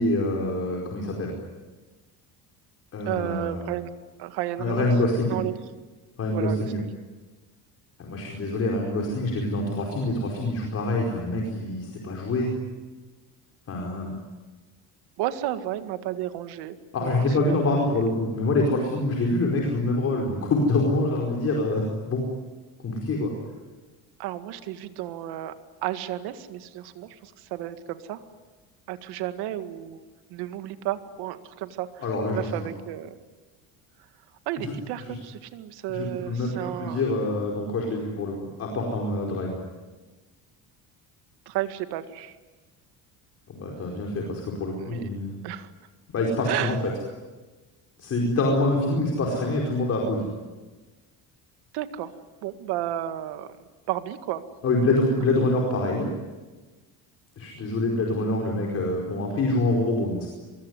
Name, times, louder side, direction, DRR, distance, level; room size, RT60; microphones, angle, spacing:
voice 1, 0.0-1.4 2.9-3.7 4.6-5.4 6.2-6.8 8.0-12.5 13.7-14.1 16.9-22.3 22.8-23.3 32.0-32.7 34.6-34.7 35.0-35.2 35.9-39.6 43.5-45.3 46.1-46.8 48.0-50.3 54.6-56.1 57.4-60.3, left 2 dB, 40° left, 0 dB, 5.0 m, -26 dB
voice 2, 3.1-3.9 4.2-4.9 5.3-5.5 6.3-6.9 15.2-17.1 17.4-17.8 24.2-25.5 25.8-28.2 28.9-30.0 30.3-31.9 32.3-33.1 34.5-37.0 41.5-42.3 44.8-45.1 45.4-45.7 46.5-46.8 51.7-52.1 52.4-53.5 53.9-54.4, right 13 dB, 80° right, 9 dB, 2.0 m, -32 dB
24.5 x 23.0 x 9.8 m, 1.3 s
cardioid pair, 150°, 38 cm